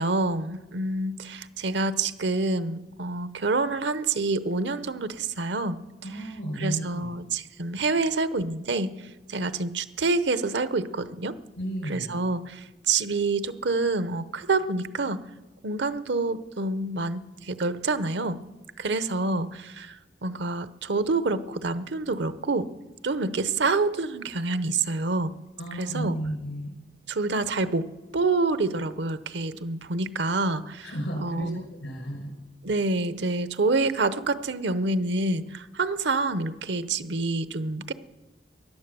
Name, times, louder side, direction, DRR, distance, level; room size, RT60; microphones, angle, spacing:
voice 1, 0.0-5.8 6.6-8.9 9.3-11.3 11.9-15.2 15.6-18.4 18.8-20.0 20.2-22.7 23.0-25.3 25.8-26.1 27.1-27.8 28.1-30.9 31.2-31.6 32.6-37.9, right 3 dB, 70° right, 14 dB, 0.8 m, -27 dB
voice 2, 6.0-7.1 11.6-12.2 25.6-26.7 30.8-32.3, right 1 dB, 90° left, 4 dB, 5.4 m, -33 dB
17.5 x 11.5 x 6.9 m, 1.1 s
head